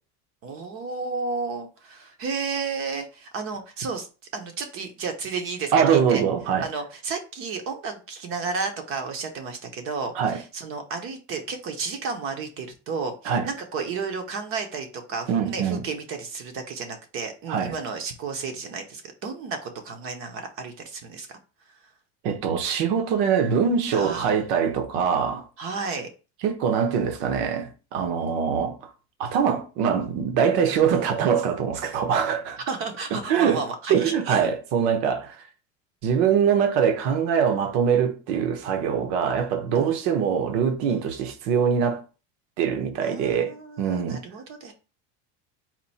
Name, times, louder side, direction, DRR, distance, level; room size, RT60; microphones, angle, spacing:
voice 1, 0.4-4.1 4.3-6.2 6.6-21.4 23.9-24.4 25.6-26.1 32.7-34.4 39.7-39.9 40.9-41.0 43.0-44.7, right 4 dB, 40° right, 0.7 m, -32 dB
voice 2, 5.7-6.7 10.1-10.4 13.2-13.5 15.3-15.8 17.5-17.7 22.2-25.4 26.4-28.9 29.2-32.6 33.1-33.6 33.9-35.4 36.0-42.0 42.6-44.2, right 7 dB, 70° right, 1.0 m, -23 dB
4.3 x 2.6 x 4.1 m
cardioid pair, 170°, 34 cm